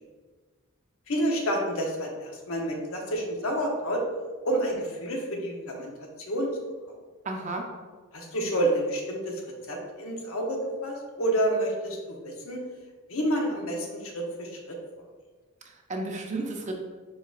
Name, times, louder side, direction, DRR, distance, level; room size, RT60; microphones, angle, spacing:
voice 1, 1.1-4.0 4.4-5.9 6.3-6.5 8.1-9.4 9.7-12.6 13.1-14.8, right 1 dB, 90° left, 1 dB, 0.9 m, -29 dB
voice 2, 7.2-7.7 15.7-16.7, right 2 dB, 35° right, 2 dB, 0.6 m, -33 dB
4.7 x 4.7 x 2.4 m, 1.4 s
head